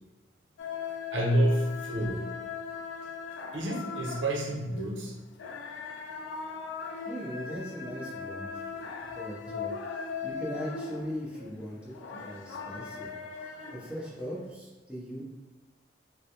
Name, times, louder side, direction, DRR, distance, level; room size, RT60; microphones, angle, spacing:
sound 1, 0.6-14.5, left 5 dB, 85° left, 0.3 m, -39 dB
voice 1, 1.1-2.2 3.5-5.1, right 1 dB, 85° right, -1 dB, 0.7 m, -28 dB
voice 2, 7.1-8.8 9.1-13.1 13.7-15.2, equal, 5° right, -6 dB, 0.7 m, -39 dB
3.6 x 2.2 x 2.9 m, 1.2 s
head